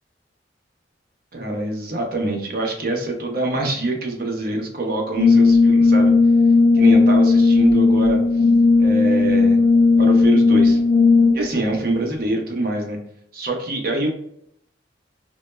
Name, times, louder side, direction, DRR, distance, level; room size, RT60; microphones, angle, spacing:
voice 1, 1.3-6.1 6.7-8.2 8.8-9.6 10.0-10.8 11.3-13.0 13.3-14.1, right 2 dB, 50° right, 2 dB, 0.6 m, -25 dB
Brass instrument, 5.2-11.6, left 3 dB, 55° left, 0.4 m, -15 dB
2.1 x 2.0 x 3.1 m, 0.71 s
head